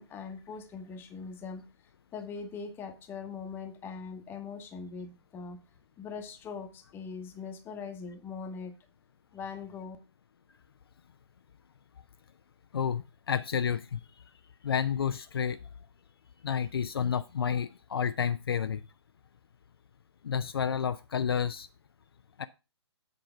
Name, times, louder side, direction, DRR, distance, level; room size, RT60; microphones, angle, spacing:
voice 1, 0.0-1.6 2.1-5.6 6.0-8.8 9.3-10.0, left 5 dB, 15° left, 0.9 m, -41 dB
voice 2, 12.7-14.0 14.6-15.6 16.4-18.8 20.2-21.7 22.4-22.5, left 7 dB, 60° left, 0.4 m, -30 dB
7.9 x 3.8 x 5.7 m
figure-of-eight pair, 125°, 15 cm